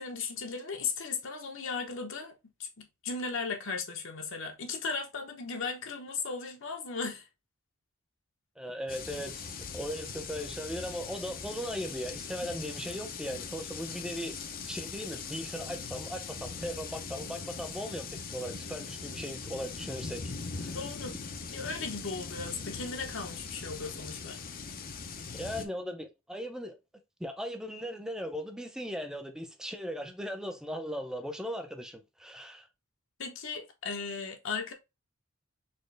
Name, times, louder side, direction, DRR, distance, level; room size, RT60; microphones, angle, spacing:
voice 1, 0.0-2.3 2.6-7.2 20.7-21.1 21.5-24.4 33.2-34.7, left 4 dB, 65° left, 0.9 m, -36 dB
voice 2, 8.6-14.4 14.7-20.2 20.6-20.8 25.3-26.8 27.2-32.7, equal, 5° right, 0.6 m, -38 dB
sound 1, 8.9-25.7, left 5 dB, 45° left, 0.6 m, -41 dB
4.3 x 3.0 x 3.2 m
head